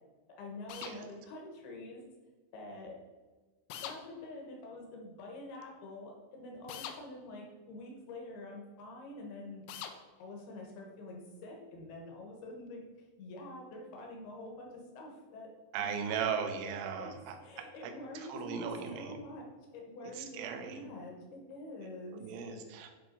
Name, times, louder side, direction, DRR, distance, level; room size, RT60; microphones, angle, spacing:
voice 1, 0.3-2.0 2.5-3.0 3.8-9.7 10.2-12.9 13.2-16.2 16.5-16.7 17.0-22.3, left 2 dB, 70° left, 0 dB, 2.5 m, -46 dB
sound 1, 0.7-1.0 3.7-4.0 6.7-7.0 9.7-10.0, left 9 dB, 90° left, 3.2 m, -42 dB
voice 2, 15.7-19.2 20.0-20.8 22.1-22.9, right 7 dB, 80° right, 5 dB, 3.2 m, -38 dB
10.5 x 3.4 x 5.1 m, 1.3 s
omnidirectional pair, 5.6 m